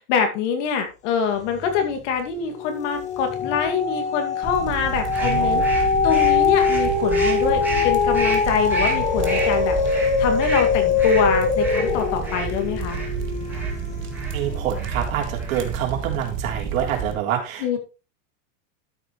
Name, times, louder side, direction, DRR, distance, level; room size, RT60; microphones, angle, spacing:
voice 1, 0.0-5.7 6.0-13.0 17.6-17.8, left 6 dB, 60° left, 5 dB, 2.3 m, -25 dB
sound 1, 1.5-2.0 2.4-14.9 15.4-15.5, left 5 dB, 15° left, 1.0 m, -23 dB
sound 2, 4.4-17.1, right 6 dB, 30° right, 1.3 m, -31 dB
sound 3, 5.1-13.1 13.5-13.8 14.1-14.4 14.7-15.0 15.3-15.8, right 2 dB, 5° right, 2.4 m, -32 dB
voice 2, 5.2-5.8 14.3-17.8, right 10 dB, 75° right, 1 dB, 3.5 m, -27 dB
12.5 x 6.2 x 3.1 m, 0.31 s
supercardioid pair, 155°, 41 cm